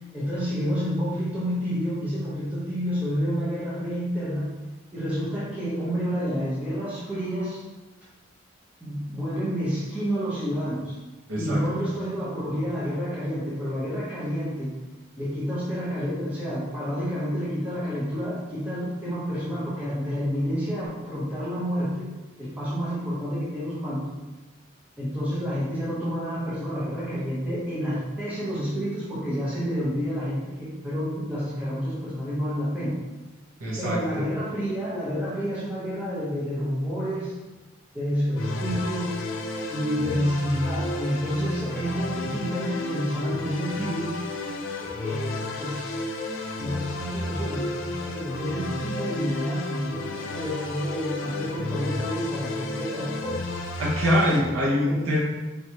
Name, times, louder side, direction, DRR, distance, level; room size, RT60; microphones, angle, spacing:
voice 1, 0.1-4.5 4.9-7.6 8.8-11.0 11.4-14.7 15.2-22.1 22.4-24.1 25.0-33.0 33.8-37.3 37.9-39.1 39.7-44.2 44.8-46.1 46.6-53.4 54.8-55.2, equal, 10° right, -10 dB, 0.8 m, -29 dB
voice 2, 11.3-11.6 33.6-34.2 53.8-55.2, equal, 80° right, -4 dB, 0.8 m, -24 dB
sound 1, 38.4-54.4, left 2 dB, 75° left, 0.5 m, -32 dB
4.6 x 3.0 x 2.9 m, 1.1 s
head